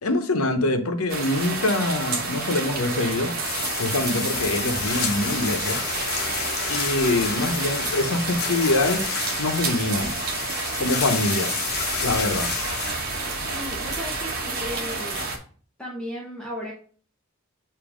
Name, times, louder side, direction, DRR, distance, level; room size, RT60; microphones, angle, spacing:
voice 1, 0.0-3.3 3.8-5.8 6.7-9.1 9.4-10.2 10.8-11.5 12.0-12.5, left 2 dB, 85° left, 0.8 m, -24 dB
sound 1, 1.1-15.4, right 3 dB, 45° right, 1.1 m, -30 dB
sound 2, 3.4-13.8, left 5 dB, 45° left, 0.9 m, -30 dB
sound 3, 4.3-9.7, left 3 dB, 20° left, 0.5 m, -42 dB
voice 2, 13.5-15.3 15.8-16.7, equal, 5° left, 0.9 m, -35 dB
7.1 x 2.7 x 4.9 m
head